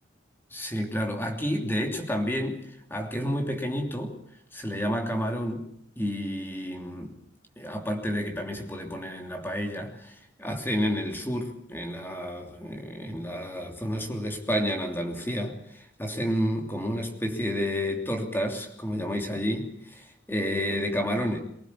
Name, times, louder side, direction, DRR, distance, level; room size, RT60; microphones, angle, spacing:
voice 1, 0.5-4.2 4.5-7.2 7.6-21.4, equal, 10° left, 3 dB, 3.0 m, -30 dB
24.0 x 18.5 x 8.5 m, 0.70 s
head